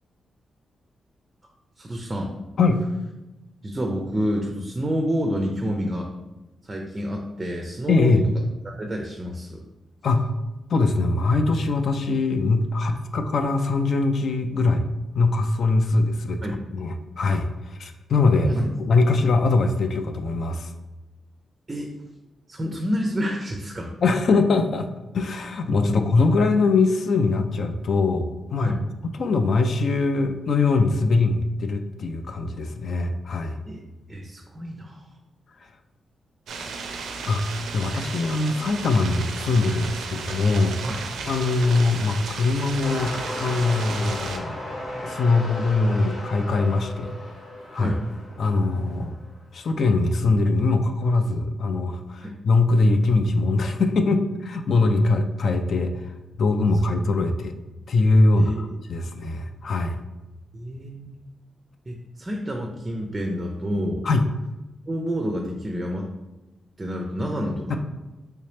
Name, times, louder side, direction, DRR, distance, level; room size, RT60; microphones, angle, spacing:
voice 1, 1.8-2.4 3.6-6.1 6.6-8.2 8.6-9.6 12.8-12.9 16.4-16.6 18.4-18.7 21.7-22.0 22.5-23.9 25.9-26.1 28.6-28.8 33.7-33.8 34.1-35.1 40.8-41.0 47.8-48.0 52.2-52.4 58.4-58.8 59.3-59.4 60.5-61.2 61.9-64.1 64.9-66.1 66.8-67.8, equal, 25° right, 2 dB, 0.4 m, -28 dB
voice 2, 7.9-8.2 10.0-10.3 10.7-14.8 15.1-18.5 18.9-20.7 24.0-24.9 25.1-28.8 29.2-33.6 37.3-37.4 37.7-40.8 41.3-44.6 45.0-47.1 47.7-47.9 48.4-49.1 49.5-56.1 56.4-57.5 57.9-60.0 64.0-64.2 67.7-67.8, left 3 dB, 60° left, 6 dB, 0.3 m, -22 dB
sound 1, 36.5-44.4, right 4 dB, 90° right, 0.4 m, -34 dB
sound 2, 42.8-49.2 49.9-50.0, left 1 dB, 80° left, 1.5 m, -35 dB
3.2 x 2.8 x 3.2 m, 1.1 s
cardioid pair, 95°, 0 cm